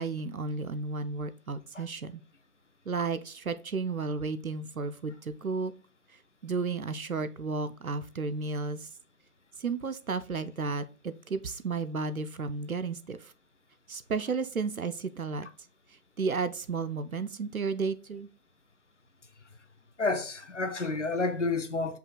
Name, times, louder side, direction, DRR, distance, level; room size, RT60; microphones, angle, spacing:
voice 1, 0.0-2.2 2.9-5.7 6.4-8.9 9.6-13.3 13.9-15.5 16.2-18.3, right 4 dB, 65° right, 0.6 m, -33 dB
voice 2, 20.0-22.0, left 3 dB, 50° left, 0.5 m, -30 dB
5.5 x 2.3 x 3.7 m
figure-of-eight pair, 170°, 46 cm